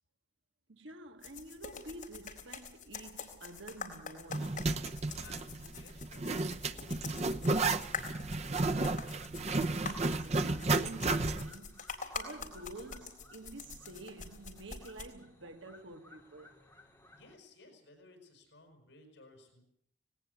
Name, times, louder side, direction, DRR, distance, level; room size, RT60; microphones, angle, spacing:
voice 1, 0.7-4.7 9.7-16.6, right 2 dB, 80° right, 1.9 m, -49 dB
sound 1, 1.2-15.0, left 5 dB, 45° left, 3.9 m, -46 dB
Zipper (clothing), 4.3-11.6, right 3 dB, 35° right, 0.8 m, -32 dB
voice 2, 5.1-7.9 17.1-19.6, left 2 dB, 70° left, 6.0 m, -59 dB
sound 2, 7.4-17.4, left 1 dB, 10° left, 3.9 m, -61 dB
19.0 x 18.0 x 8.3 m
head